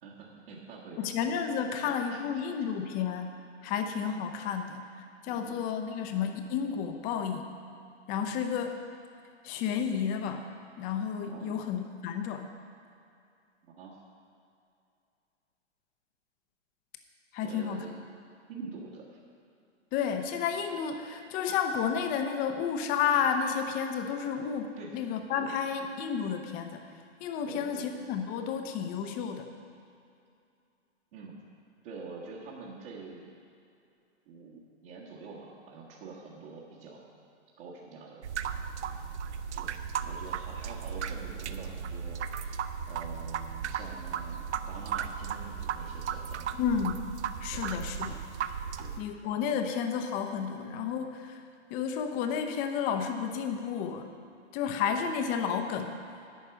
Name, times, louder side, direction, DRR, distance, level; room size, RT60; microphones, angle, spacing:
voice 1, 0.0-1.1 1.5-1.6 1.8-2.2 4.1-4.3 5.3-5.6 11.3-11.7 13.6-14.0 17.4-18.0 18.5-19.2 24.8-25.0 25.4-25.5 27.4-27.9 31.1-31.4 31.8-33.3 34.3-37.2 37.6-38.4 39.5-42.6 42.9-46.6 47.5-48.0 48.5-49.0, right 4 dB, 50° right, -6 dB, 1.9 m, -46 dB
voice 2, 1.0-3.3 3.6-4.8 5.2-7.5 8.1-8.8 9.4-10.5 10.8-12.5 17.3-17.8 19.9-26.8 27.2-29.5 46.6-47.0 47.4-48.2 49.0-51.4 51.7-54.1 54.5-55.9, left 7 dB, 25° left, 6 dB, 0.7 m, -31 dB
sound 1, 38.2-49.0, right 7 dB, 70° right, 0.6 m, -36 dB
11.0 x 4.6 x 8.0 m, 2.6 s
hypercardioid pair, 130°, 36 cm